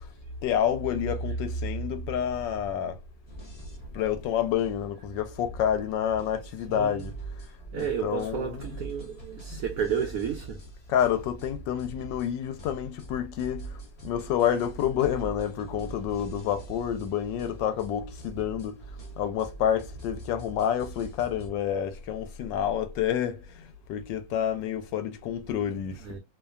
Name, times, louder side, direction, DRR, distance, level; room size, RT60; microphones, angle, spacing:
voice 1, 0.4-3.0 3.9-7.1 7.7-8.6 10.9-18.8 19.2-23.4 23.9-25.9, left 9 dB, 80° left, 1.2 m, -28 dB
sound 1, 3.3-21.5, right 3 dB, 50° left, 0.4 m, -44 dB
voice 2, 6.7-7.0 7.7-10.6 26.0-26.2, right 8 dB, 80° right, 0.7 m, -32 dB
3.0 x 2.2 x 2.3 m
omnidirectional pair, 2.0 m